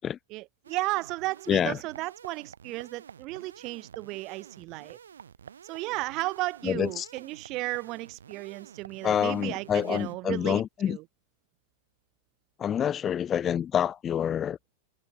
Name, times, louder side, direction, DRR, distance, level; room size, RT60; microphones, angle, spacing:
voice 1, 0.3-5.0 5.6-11.0, right 20 dB, 45° right, 1.9 m, -34 dB
sound 1, 0.6-10.2, right 7 dB, 75° right, 6.8 m, -50 dB
voice 2, 1.5-1.8 6.6-7.1 9.0-11.0 12.6-14.6, left 9 dB, 25° left, 0.6 m, -27 dB
figure-of-eight pair, 95°, 0 cm